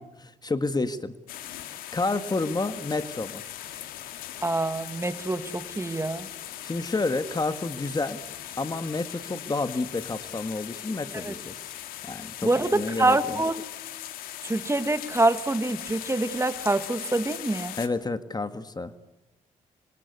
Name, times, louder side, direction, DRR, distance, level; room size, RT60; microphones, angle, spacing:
voice 1, 0.2-1.1 1.7-3.4 6.6-8.2 8.6-11.7 12.0-13.4 17.8-18.9, left 3 dB, 30° left, 11 dB, 1.8 m, -30 dB
sound 1, 1.3-17.9, left 12 dB, 85° left, 2.2 m, -40 dB
voice 2, 4.4-6.3 11.2-11.3 12.4-13.6 14.4-17.7, right 2 dB, 20° right, 11 dB, 2.4 m, -25 dB
26.5 x 25.0 x 8.3 m, 1.0 s
supercardioid pair, 55°, 15 cm